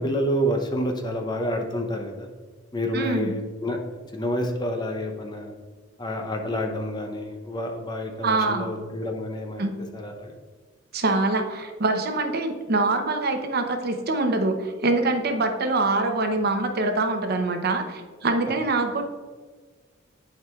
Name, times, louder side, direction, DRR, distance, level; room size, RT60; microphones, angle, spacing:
voice 1, 0.0-2.3 2.7-3.8 4.1-5.5 6.0-9.7 9.9-10.3, equal, 20° left, 3 dB, 0.7 m, -28 dB
voice 2, 2.9-3.3 8.2-8.7 9.6-9.7 10.9-19.0, right 2 dB, 50° right, 5 dB, 0.7 m, -24 dB
10.5 x 4.8 x 2.4 m, 1.4 s
head